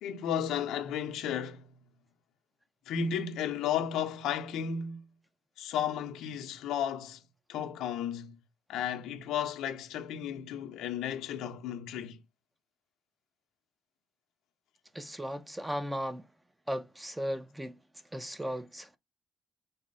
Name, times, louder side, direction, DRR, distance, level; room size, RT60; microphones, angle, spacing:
voice 1, 0.0-1.7 2.9-5.0 5.6-7.2 7.5-8.4 8.7-12.2, left 8 dB, 90° left, 0.6 m, -33 dB
voice 2, 14.9-16.3 16.7-17.8 18.1-19.0, equal, 10° right, 0.6 m, -36 dB
4.1 x 2.0 x 3.8 m
cardioid pair, 90°, 0 cm